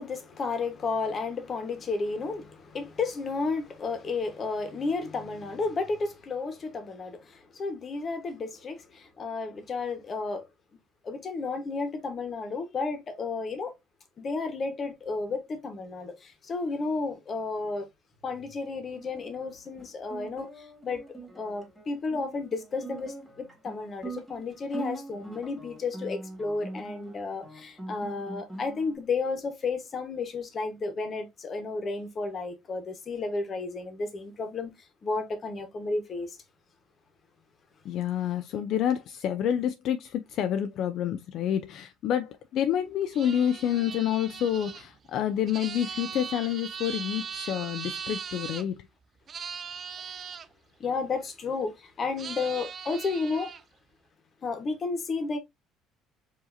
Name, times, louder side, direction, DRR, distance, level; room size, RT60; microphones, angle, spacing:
voice 1, 0.0-10.5 11.0-13.8 14.2-17.9 18.2-34.7 35.0-36.4 50.8-53.5 54.4-55.4, left 4 dB, 35° left, 1.1 m, -32 dB
Guitar, 18.9-28.9, right 2 dB, ahead, 1.9 m, -43 dB
voice 2, 37.8-48.9, left 10 dB, 60° left, 0.3 m, -28 dB
sound 1, 43.1-48.6 49.3-50.5 52.2-53.6, right 6 dB, 40° right, 0.4 m, -39 dB
4.8 x 2.8 x 2.6 m
cardioid pair, 110°, 0 cm